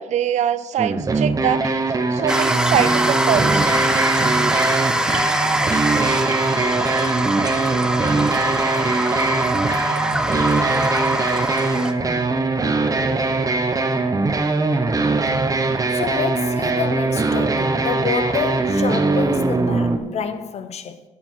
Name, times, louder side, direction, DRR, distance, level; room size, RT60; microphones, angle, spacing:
voice 1, 0.0-1.8 2.1-3.9, right 10 dB, 70° right, 0.5 m, -23 dB
sound 1, 0.8-20.0, right 3 dB, 30° right, 1.0 m, -21 dB
sound 2, 2.3-11.9, right 1 dB, 5° right, 0.8 m, -22 dB
voice 2, 15.9-21.0, left 6 dB, 60° left, 0.9 m, -28 dB
9.6 x 7.6 x 4.6 m
cardioid pair, 80°, 12 cm